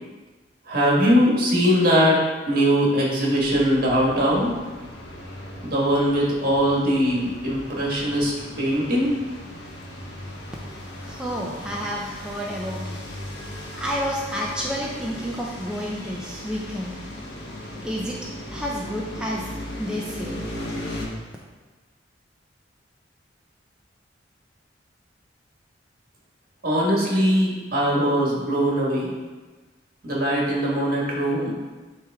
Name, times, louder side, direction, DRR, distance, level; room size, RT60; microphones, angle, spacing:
voice 1, 0.7-2.2 2.5-4.5 5.6-9.1 26.6-29.1 30.0-31.7, equal, 55° right, -4 dB, 1.6 m, -21 dB
sound 1, 3.4-21.1, left 1 dB, 60° left, 1.1 m, -37 dB
voice 2, 10.6-17.0 17.7-18.2 18.5-19.5 19.8-20.4, equal, 5° right, -4 dB, 0.5 m, -31 dB
8.9 x 3.2 x 3.6 m, 1.3 s
head